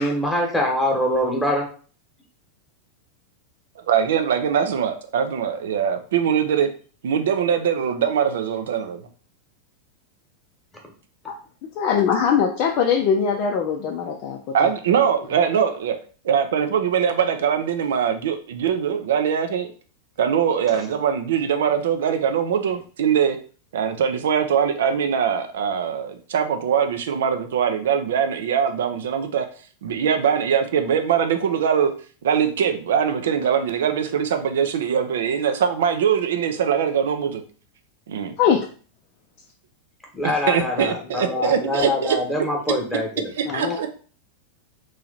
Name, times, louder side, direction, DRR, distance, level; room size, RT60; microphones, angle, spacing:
voice 1, 0.0-1.6 40.2-43.3, left 1 dB, 5° left, 0 dB, 1.2 m, -24 dB
voice 2, 3.9-6.7 7.0-9.0 14.5-16.0 16.2-19.7 20.2-23.4 23.7-29.5 29.8-31.9 32.2-37.4 38.1-38.3 40.5-42.2 43.3-43.9, right 8 dB, 60° right, 7 dB, 0.5 m, -22 dB
voice 3, 11.8-14.6 38.4-38.6 43.4-43.8, left 7 dB, 40° left, 1 dB, 0.5 m, -21 dB
3.1 x 2.8 x 3.9 m, 0.40 s
figure-of-eight pair, 90°, 0 cm